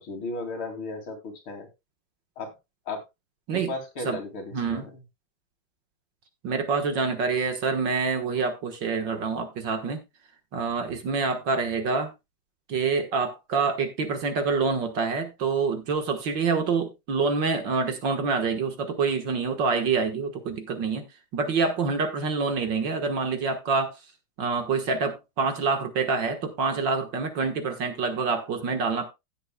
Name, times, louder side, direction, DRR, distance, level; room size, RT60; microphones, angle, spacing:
voice 1, 0.0-1.7 2.4-2.5 2.9-3.0 3.5-5.0, left 2 dB, 65° left, 3.4 m, -35 dB
voice 2, 4.5-4.9 6.4-10.0 10.5-12.1 12.7-21.0 21.3-23.9 24.4-29.1, right 4 dB, 55° right, 2.0 m, -26 dB
16.5 x 7.8 x 2.2 m
omnidirectional pair, 2.4 m